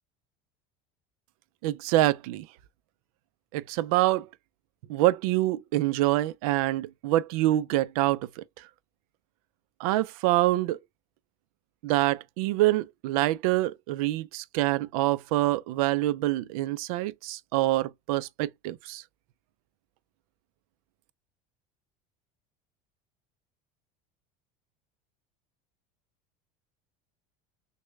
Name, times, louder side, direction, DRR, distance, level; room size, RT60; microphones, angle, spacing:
voice 1, 1.6-2.5 3.5-4.3 4.9-8.4 9.8-10.8 11.8-19.0, right 16 dB, 80° right, 0.4 m, -26 dB
6.2 x 2.2 x 2.2 m
supercardioid pair, 135°, 18 cm